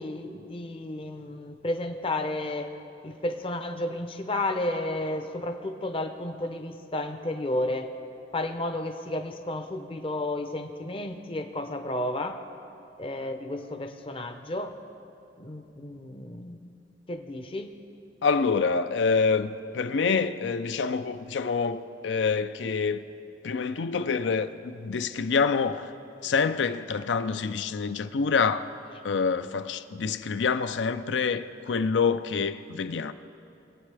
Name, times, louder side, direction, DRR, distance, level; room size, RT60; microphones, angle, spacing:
voice 1, 0.0-2.7 3.0-7.9 8.3-12.4 13.0-14.7 15.4-16.7 17.1-17.7, left 1 dB, 30° left, 0.6 m, -32 dB
voice 2, 18.2-23.0 23.4-25.9 26.2-28.7 29.0-33.1, left 5 dB, 70° left, 0.5 m, -26 dB
22.0 x 9.0 x 3.3 m
head